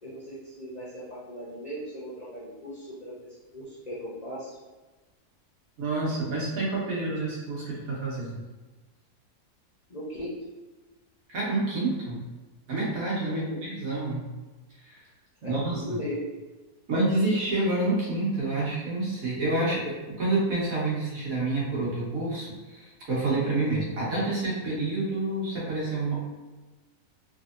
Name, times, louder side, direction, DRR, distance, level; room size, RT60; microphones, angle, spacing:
voice 1, 0.0-3.2 3.5-4.6 9.9-10.4 13.2-13.7 15.4-16.2, equal, 40° left, -9 dB, 0.6 m, -37 dB
voice 2, 5.8-8.4 11.3-12.2 12.7-14.3 14.8-15.0 15.5-16.0 16.9-26.2, right 2 dB, 60° right, -6 dB, 1.5 m, -28 dB
3.5 x 3.1 x 2.5 m, 1.2 s
omnidirectional pair, 1.7 m